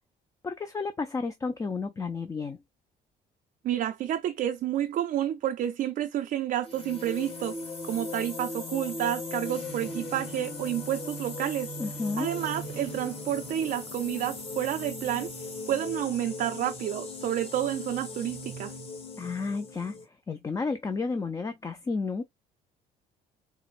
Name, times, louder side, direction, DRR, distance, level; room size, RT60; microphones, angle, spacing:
voice 1, 0.4-2.6 11.8-12.3 19.2-20.0 20.3-22.2, left 4 dB, 20° left, 0.4 m, -32 dB
voice 2, 3.6-7.6 7.8-11.7 12.2-15.3 15.7-18.7, right 11 dB, 55° right, 0.4 m, -30 dB
sound 1, 6.6-20.0, left 2 dB, 35° left, 1.5 m, -38 dB
4.6 x 2.0 x 2.4 m
cardioid pair, 110°, 17 cm